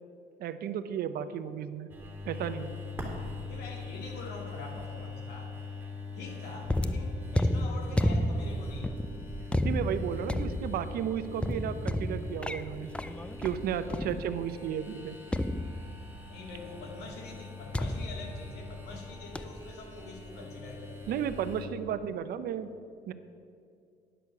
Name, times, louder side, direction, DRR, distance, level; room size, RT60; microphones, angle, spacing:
voice 1, 0.4-1.9 2.3-2.8 9.6-12.9 13.4-15.2 21.1-22.7 23.1-23.2, right 8 dB, 65° right, 12 dB, 0.6 m, -33 dB
sound 1, 1.9-21.7, left 3 dB, 10° right, 2.2 m, -43 dB
voice 2, 3.5-5.5 6.1-9.1 13.8-14.1 16.3-21.2, left 3 dB, 80° left, 1 dB, 2.0 m, -45 dB
sound 2, 6.6-14.6 15.3-16.3 17.7-19.0 19.3-19.7, left 1 dB, 5° left, 0.4 m, -32 dB
10.0 x 6.4 x 6.9 m, 2.4 s
cardioid pair, 110°, 17 cm